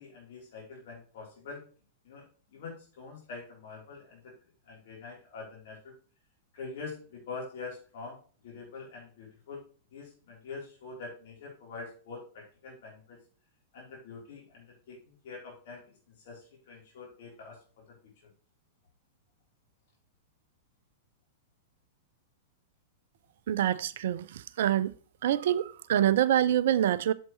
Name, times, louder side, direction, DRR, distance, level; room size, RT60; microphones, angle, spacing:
voice 1, 0.0-1.6 2.0-4.3 4.7-5.9 6.5-8.2 8.4-9.6 9.9-13.2 13.7-15.9 16.2-18.0, left 4 dB, 55° left, 3.6 m, -45 dB
voice 2, 23.5-24.9 25.2-27.1, right 11 dB, 55° right, 0.4 m, -26 dB
8.5 x 7.3 x 3.2 m
figure-of-eight pair, 100°, 0 cm